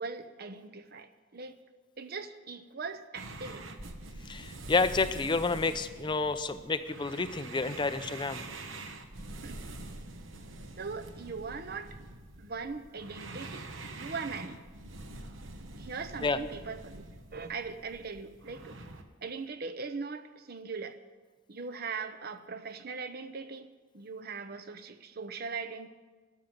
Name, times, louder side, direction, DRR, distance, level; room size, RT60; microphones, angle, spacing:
voice 1, 0.0-1.6 2.0-3.7 9.4-9.6 10.8-12.0 12.4-13.7 13.9-14.6 15.8-17.0 17.3-18.8 19.2-21.0 21.5-23.7 23.9-25.9, right 4 dB, 50° right, 10 dB, 0.8 m, -40 dB
sound 1, 3.1-19.0, right 2 dB, 80° right, 1.1 m, -45 dB
voice 2, 4.3-8.4 16.2-16.4, left 3 dB, 25° left, 11 dB, 0.5 m, -30 dB
12.5 x 7.3 x 9.1 m, 1.4 s
head